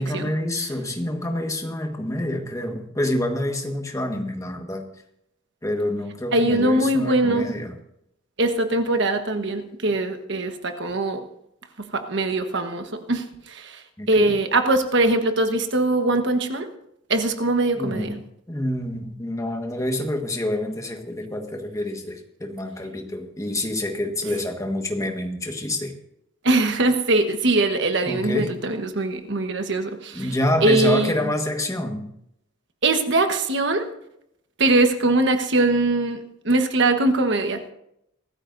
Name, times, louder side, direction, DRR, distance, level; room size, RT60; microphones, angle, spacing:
voice 1, 0.0-4.9 5.6-7.7 14.0-14.4 17.8-18.2 18.5-25.9 28.0-28.6 30.1-32.1, left 1 dB, 15° left, 3 dB, 1.5 m, -27 dB
voice 2, 6.3-7.5 8.4-11.2 11.8-16.7 17.1-18.2 26.4-30.3 30.6-31.3 32.8-33.9 34.6-37.7, right 2 dB, 60° right, 6 dB, 1.3 m, -22 dB
24.0 x 13.5 x 2.7 m, 0.78 s
head